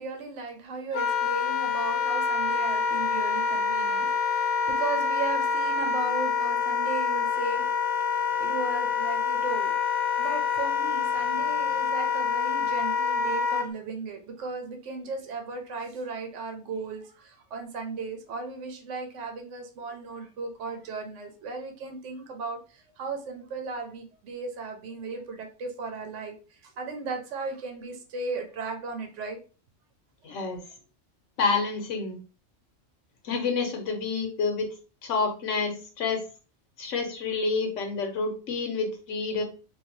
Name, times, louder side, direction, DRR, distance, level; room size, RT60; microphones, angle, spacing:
voice 1, 0.0-9.7 10.2-29.4 30.3-30.4, right 4 dB, 75° right, 5 dB, 1.0 m, -36 dB
Wind instrument woodwind instrument, 0.9-13.7, left 5 dB, 60° left, 0.9 m, -26 dB
voice 2, 30.2-30.6 31.4-32.2 33.2-34.7 35.0-36.2 36.8-39.4, left 4 dB, 80° left, 4 dB, 1.1 m, -28 dB
3.2 x 2.6 x 2.7 m, 0.35 s
omnidirectional pair, 1.3 m